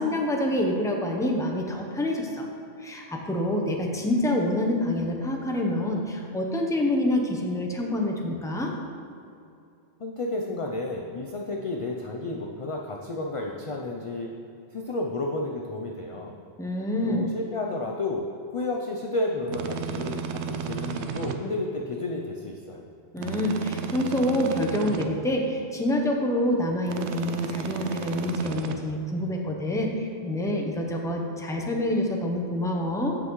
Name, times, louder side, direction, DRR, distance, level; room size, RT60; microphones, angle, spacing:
voice 1, 0.0-2.5 2.8-8.7 16.6-17.3 23.1-33.2, left 1 dB, 5° left, 1 dB, 0.7 m, -27 dB
voice 2, 10.0-14.3 14.7-16.4 17.0-18.3 18.5-22.9, left 2 dB, 40° left, 0 dB, 0.5 m, -31 dB
sound 1, 19.5-21.4 23.2-25.1 26.9-28.8, right 7 dB, 90° right, 0.9 m, -33 dB
14.5 x 5.6 x 3.1 m, 2.5 s
omnidirectional pair, 1.1 m